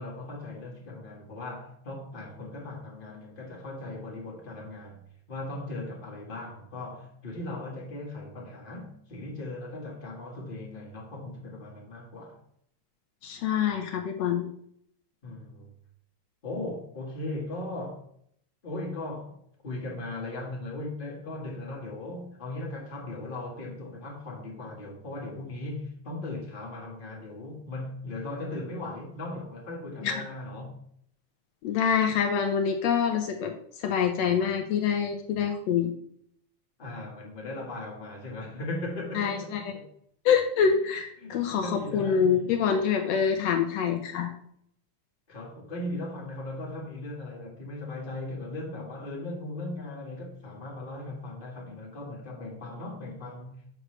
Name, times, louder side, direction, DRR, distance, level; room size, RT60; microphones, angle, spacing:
voice 1, 0.0-5.0 5.3-12.4 15.2-15.7 16.4-18.0 18.6-19.4 19.6-30.8 36.8-39.8 41.2-42.8 45.3-53.7, left 2 dB, 25° left, 1.1 m, -38 dB
voice 2, 13.2-14.5 30.0-30.2 31.6-33.5 33.8-35.9 39.1-39.6 40.2-44.3, left 7 dB, 75° left, 1.7 m, -26 dB
7.8 x 6.2 x 3.2 m
omnidirectional pair, 3.4 m